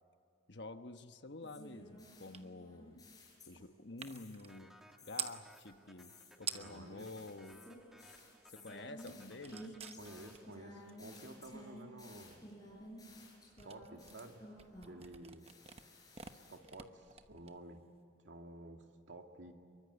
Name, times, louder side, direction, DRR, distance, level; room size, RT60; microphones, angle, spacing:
voice 1, 0.5-3.1 3.5-4.8 5.0-7.6 8.5-9.8, left 2 dB, 65° left, 8 dB, 1.2 m, -49 dB
sound 1, 1.4-3.7 4.0-4.6 5.0-15.1 15.4-16.6, left 1 dB, 20° left, 6.6 m, -55 dB
sound 2, 2.3-2.5 2.8-5.4 6.1-6.2 6.4-6.9 7.3-8.4 8.7-18.0, right 8 dB, 30° right, 1.0 m, -49 dB
sound 3, 4.5-11.2, equal, ahead, 1.5 m, -62 dB
voice 2, 6.5-7.1 10.0-12.4 13.6-14.4 14.9-15.5 16.3-17.8 18.2-19.5, right 1 dB, 75° right, 4 dB, 2.3 m, -52 dB
26.0 x 23.5 x 8.1 m, 2.5 s
head